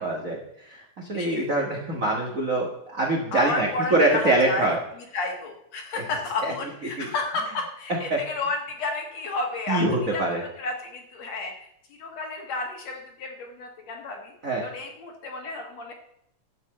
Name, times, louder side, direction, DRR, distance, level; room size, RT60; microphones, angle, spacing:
voice 1, 0.0-4.8 5.9-6.0 6.4-6.5 7.0-7.1 8.1-8.2 9.7-10.4 14.4-14.7, right 2 dB, 45° right, -2 dB, 1.0 m, -24 dB
voice 2, 1.1-1.5 3.3-4.8 5.1-9.8 10.1-10.2 10.6-14.3 14.6-15.9, left 3 dB, 55° left, 3 dB, 2.3 m, -32 dB
12.0 x 5.4 x 7.7 m, 0.74 s
omnidirectional pair, 4.1 m